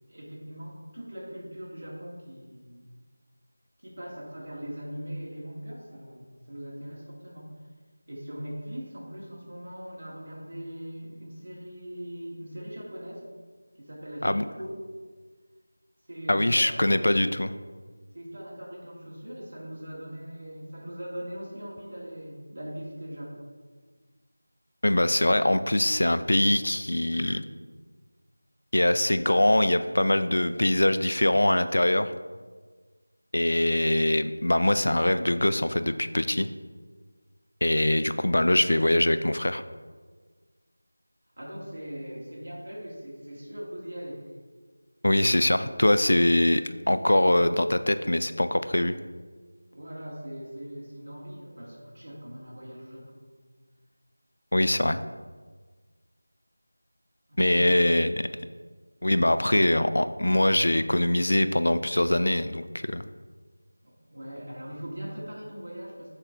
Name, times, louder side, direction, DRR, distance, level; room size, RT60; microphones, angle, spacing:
voice 1, 0.1-2.9 3.8-7.5 8.1-13.2 13.8-14.7 16.1-17.1 18.1-23.4 41.4-44.2 49.7-53.3 57.3-57.9 63.8-66.2, equal, 50° right, -4 dB, 1.9 m, -40 dB
voice 2, 16.3-17.5 24.8-27.4 28.7-32.1 33.3-36.5 37.6-39.6 45.0-49.0 54.5-55.0 57.4-58.1 59.0-63.1, left 1 dB, 70° left, 11 dB, 0.3 m, -23 dB
6.5 x 3.8 x 4.5 m, 1.4 s
figure-of-eight pair, 175°, 0 cm